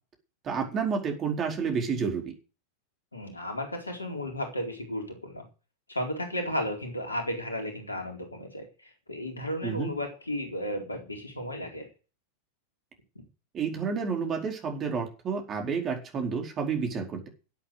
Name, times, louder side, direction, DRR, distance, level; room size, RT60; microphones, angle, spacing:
voice 1, 0.4-2.3 9.6-9.9 13.5-17.3, right 5 dB, 30° right, 3 dB, 4.6 m, -30 dB
voice 2, 3.1-5.4 5.9-8.7 9.1-11.9, left 1 dB, 80° left, 3 dB, 4.1 m, -34 dB
12.5 x 8.6 x 8.1 m, 0.33 s
figure-of-eight pair, 90°, 0 cm